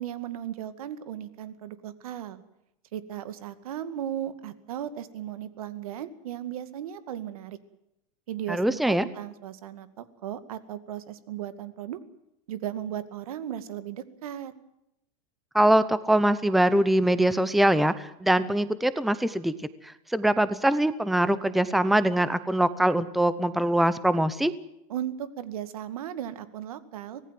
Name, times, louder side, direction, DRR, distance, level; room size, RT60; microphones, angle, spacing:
voice 1, 0.0-2.4 2.9-7.6 8.3-12.0 12.5-14.5 24.9-27.2, right 10 dB, 90° right, 12 dB, 2.3 m, -36 dB
voice 2, 8.5-9.1 15.5-19.5 20.1-24.5, right 1 dB, ahead, 14 dB, 0.8 m, -23 dB
25.0 x 18.5 x 7.7 m, 0.84 s
supercardioid pair, 165°, 18 cm